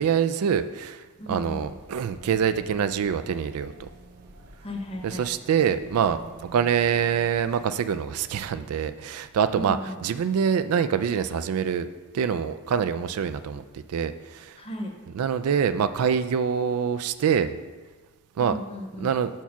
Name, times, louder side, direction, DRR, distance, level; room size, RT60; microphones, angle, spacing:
voice 1, 0.0-3.9 5.0-6.2 6.5-11.9 12.1-14.6 15.1-17.5 18.4-18.5 19.0-19.3, right 7 dB, 80° right, 11 dB, 0.3 m, -25 dB
voice 2, 1.2-1.7 4.6-5.3 9.5-10.0 14.6-14.9 18.4-19.2, equal, 25° left, 2 dB, 0.9 m, -35 dB
sound 1, 1.3-7.6, right 2 dB, 45° right, 0.9 m, -48 dB
5.9 x 4.5 x 5.6 m, 1.3 s
head